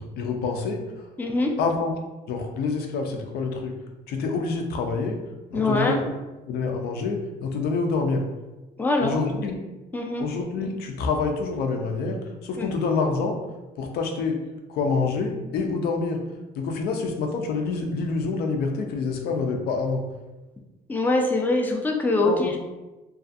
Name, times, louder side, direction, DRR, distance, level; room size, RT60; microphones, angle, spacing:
voice 1, 0.0-1.1 1.6-1.9 2.3-3.7 4.1-5.2 5.5-6.0 6.5-8.2 9.0-9.6 10.2-13.4 13.8-14.4 14.7-16.2 16.5-20.0 22.2-22.5, left 4 dB, 70° left, 3 dB, 0.5 m, -27 dB
voice 2, 1.2-1.6 5.5-6.0 8.8-9.2 9.9-10.3 12.6-12.7 20.9-22.6, left 2 dB, 10° left, 1 dB, 0.3 m, -23 dB
2.4 x 2.3 x 2.6 m, 1.1 s
cardioid pair, 110°, 17 cm